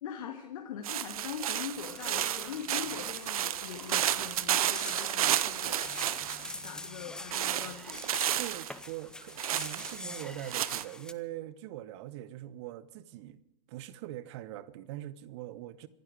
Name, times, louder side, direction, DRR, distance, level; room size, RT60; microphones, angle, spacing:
voice 1, 0.0-5.9 6.5-8.0, left 8 dB, 55° left, 2.0 m, -42 dB
sound 1, 0.8-6.7 7.3-8.7 9.4-10.8, right 11 dB, 60° right, 0.8 m, -32 dB
sound 2, 1.8-11.1, left 2 dB, 5° left, 0.6 m, -45 dB
voice 2, 8.4-13.4 13.7-15.9, right 14 dB, 40° right, 1.1 m, -42 dB
26.0 x 11.0 x 4.7 m
figure-of-eight pair, 110°, 21 cm